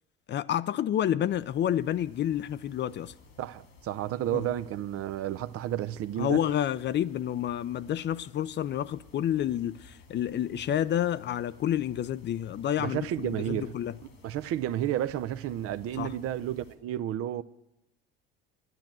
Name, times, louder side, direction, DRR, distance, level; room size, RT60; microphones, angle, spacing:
voice 1, 0.3-3.1 4.3-4.5 6.2-13.9 16.0-16.1, left 11 dB, 40° left, 0.5 m, -29 dB
sound 1, 1.2-16.8, left 4 dB, 85° left, 2.7 m, -55 dB
voice 2, 3.4-6.4 12.8-13.8 14.2-17.4, right 12 dB, 50° right, 0.6 m, -31 dB
11.0 x 10.5 x 7.5 m
hypercardioid pair, 75°, 30 cm